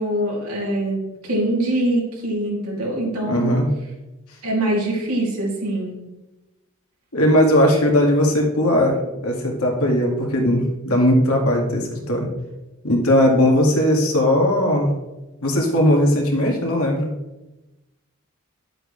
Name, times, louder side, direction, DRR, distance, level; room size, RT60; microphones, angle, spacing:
voice 1, 0.0-3.6 4.4-5.9, right 1 dB, 90° right, -3 dB, 2.9 m, -23 dB
voice 2, 3.2-3.7 7.1-9.0 9.2-12.3 12.8-14.9 15.4-17.1, left 1 dB, 85° left, 0 dB, 2.1 m, -18 dB
10.5 x 7.7 x 3.3 m, 1.0 s
head